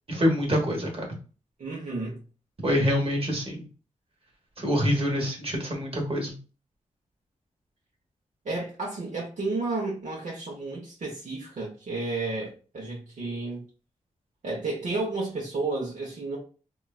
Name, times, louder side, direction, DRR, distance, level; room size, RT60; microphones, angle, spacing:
voice 1, 0.1-1.0 2.6-3.6 4.6-6.4, equal, 45° right, 1.2 m, -25 dB
voice 2, 1.6-2.2 8.4-13.7 14.4-16.4, right 3 dB, 65° right, 0.8 m, -32 dB
3.0 x 2.3 x 2.3 m
cardioid pair, 70°, 14 cm